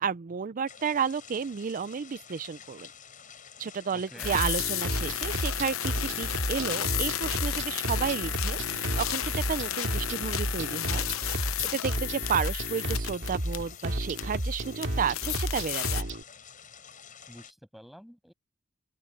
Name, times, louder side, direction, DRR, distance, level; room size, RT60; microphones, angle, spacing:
voice 1, 0.0-2.9 3.6-11.1 11.7-16.1, right 6 dB, 40° right, 0.4 m, -32 dB
sound 1, 0.7-17.5, left 7 dB, 40° left, 5.5 m, -50 dB
voice 2, 3.9-4.4 17.3-18.3, equal, ahead, 6.7 m, -49 dB
sound 2, 4.2-16.0, left 12 dB, 90° left, 0.9 m, -33 dB
sound 3, 4.2-16.2, right 1 dB, 60° right, 2.5 m, -33 dB
open air
head